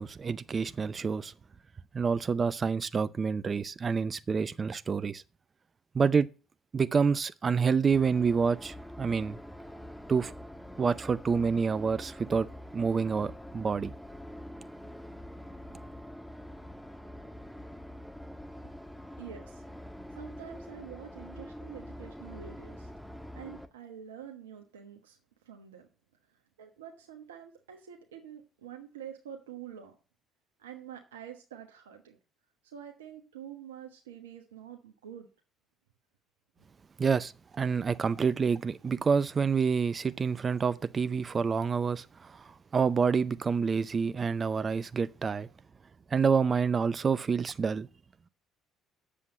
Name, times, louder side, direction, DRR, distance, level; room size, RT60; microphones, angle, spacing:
voice 1, 0.0-1.3 1.9-5.2 5.9-6.3 6.7-9.4 10.1-10.3 10.8-12.5 12.7-13.9 37.0-45.5 46.1-47.9, right 5 dB, 35° right, 0.6 m, -28 dB
sound 1, 7.9-23.7, equal, 5° left, 1.5 m, -45 dB
voice 2, 19.2-19.6 20.1-22.9 23.4-25.2 25.4-25.9 26.6-29.9 30.6-32.2 32.7-35.3, right 9 dB, 85° right, 1.1 m, -47 dB
8.4 x 7.3 x 7.6 m
hypercardioid pair, 55°, 0 cm